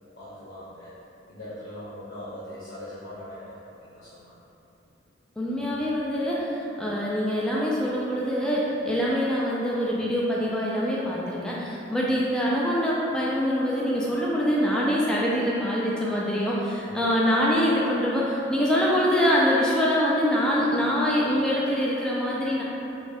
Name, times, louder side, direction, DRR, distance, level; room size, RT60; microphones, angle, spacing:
voice 1, 0.2-0.9 1.3-3.5 3.8-4.2 16.8-17.0, left 1 dB, 70° left, -13 dB, 0.9 m, -41 dB
voice 2, 5.4-22.6, equal, 5° left, -6 dB, 0.3 m, -24 dB
3.5 x 2.3 x 4.0 m, 2.9 s
head